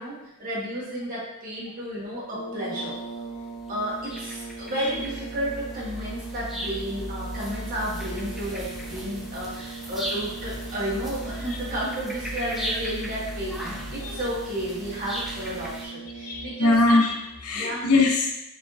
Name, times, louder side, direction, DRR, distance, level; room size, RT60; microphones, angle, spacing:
voice 1, 0.0-3.0 3.7-16.7 17.5-17.9, equal, 40° right, -7 dB, 1.5 m, -32 dB
sound 1, 1.9-2.0 3.0-15.8, equal, ahead, 0.6 m, -36 dB
sound 2, 2.2-17.4, right 4 dB, 45° left, 1.4 m, -40 dB
voice 2, 4.6-4.9 14.0-14.2 16.2-18.3, left 2 dB, 80° left, 1 dB, 0.6 m, -22 dB
4.3 x 3.3 x 2.6 m, 0.89 s
head